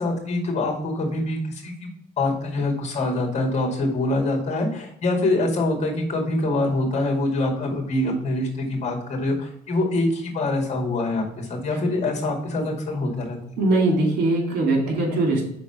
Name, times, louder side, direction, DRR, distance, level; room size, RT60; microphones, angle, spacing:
voice 1, 0.0-1.9 2.2-13.6, left 2 dB, 40° left, 1 dB, 2.2 m, -25 dB
voice 2, 13.6-15.5, right 2 dB, 70° right, 1 dB, 2.7 m, -21 dB
5.8 x 4.0 x 5.5 m, 0.73 s
cardioid pair, 110°, 17 cm